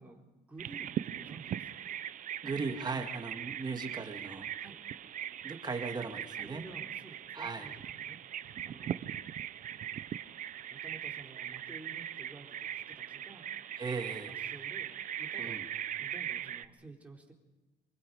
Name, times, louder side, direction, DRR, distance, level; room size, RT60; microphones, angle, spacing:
voice 1, 0.0-1.8 4.6-4.8 6.3-9.1 10.5-13.5 14.1-15.7 16.0-17.3, right 2 dB, 10° right, -1 dB, 4.0 m, -52 dB
Bird vocalization bird call bird song, 0.6-16.7, right 10 dB, 50° right, 0.7 m, -40 dB
voice 2, 2.4-4.5 5.4-6.7 7.3-7.7 13.8-14.3 15.4-15.6, right 4 dB, 25° right, 5 dB, 2.3 m, -37 dB
26.0 x 23.0 x 5.1 m, 1.1 s
cardioid pair, 110°, 17 cm